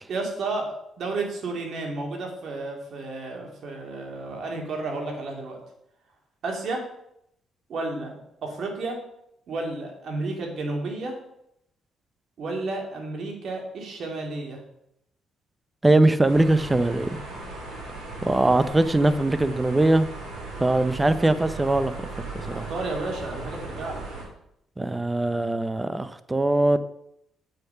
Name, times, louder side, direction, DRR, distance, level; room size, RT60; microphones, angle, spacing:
voice 1, 0.1-5.6 6.4-6.8 7.7-9.0 9.5-11.2 12.4-14.6 22.5-24.1, right 3 dB, 65° right, 1 dB, 2.5 m, -32 dB
voice 2, 15.8-17.2 18.2-20.1 20.6-21.9 22.5-22.7 24.8-26.8, right 2 dB, 15° right, 13 dB, 0.6 m, -21 dB
sound 1, 16.2-24.2, right 2 dB, 85° right, 3.7 m, -37 dB
8.0 x 6.6 x 5.7 m, 0.76 s
cardioid pair, 90°, 0 cm